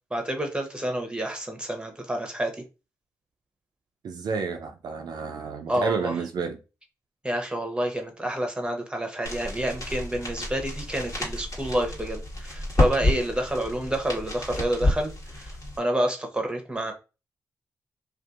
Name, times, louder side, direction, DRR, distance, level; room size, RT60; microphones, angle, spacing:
voice 1, 0.1-2.5 5.7-6.2 7.2-15.5 15.8-16.9, right 1 dB, 10° right, 0.8 m, -28 dB
voice 2, 4.0-6.6, right 5 dB, 65° right, 0.4 m, -30 dB
sound 1, 9.2-15.8, left 1 dB, 50° left, 1.4 m, -29 dB
2.6 x 2.4 x 2.4 m
supercardioid pair, 40°, 7 cm